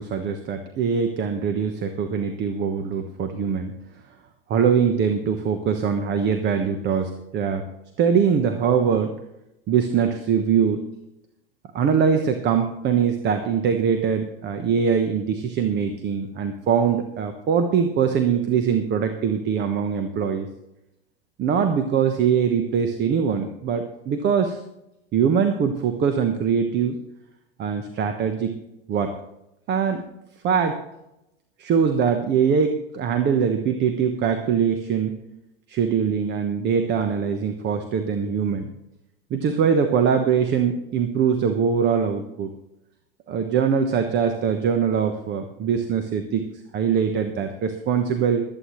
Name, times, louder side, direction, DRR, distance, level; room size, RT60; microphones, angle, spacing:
voice 1, 0.0-3.7 4.5-7.7 8.0-9.1 9.7-10.8 11.7-20.5 21.4-24.6 25.1-27.0 27.6-28.5 28.9-29.2 29.7-30.0 30.4-30.8 31.6-35.2 35.7-38.7 39.3-42.5 43.3-46.5 46.7-48.4, right 7 dB, 35° right, 8 dB, 1.2 m, -22 dB
22.0 x 8.8 x 3.2 m, 0.88 s
hypercardioid pair, 90°, 30 cm